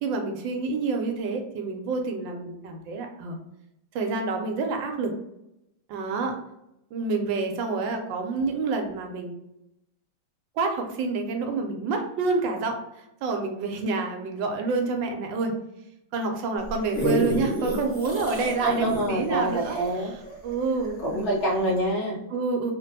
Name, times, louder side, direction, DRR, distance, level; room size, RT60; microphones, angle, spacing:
voice 1, 0.0-3.4 3.9-5.1 5.9-6.4 6.9-9.3 10.6-15.5 16.1-19.8 20.4-21.4 22.3-22.7, right 4 dB, 80° right, 4 dB, 1.3 m, -28 dB
sound 1, 16.6-21.2 21.8-21.9, equal, 5° left, 0.9 m, -30 dB
voice 2, 18.6-20.1 21.0-22.2, right 1 dB, 45° left, -4 dB, 1.2 m, -26 dB
3.1 x 2.5 x 2.6 m, 0.85 s
omnidirectional pair, 2.0 m